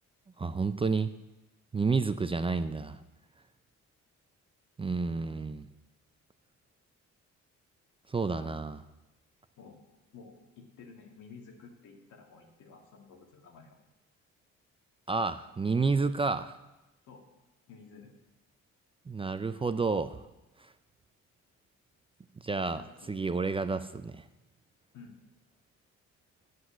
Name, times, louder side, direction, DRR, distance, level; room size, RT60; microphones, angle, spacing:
voice 1, 0.4-1.1 1.7-3.0 4.8-5.7 8.1-8.8 15.1-16.5 19.1-20.2 22.4-22.8 23.1-24.2, right 4 dB, 20° right, 10 dB, 0.4 m, -30 dB
voice 2, 1.7-2.0 8.3-8.6 9.6-9.8 10.1-13.8 17.1-17.3 17.7-18.1 22.7-23.3 24.9-25.2, left 5 dB, 80° left, 2 dB, 2.0 m, -52 dB
8.0 x 7.9 x 7.3 m, 0.99 s
cardioid pair, 90°, 30 cm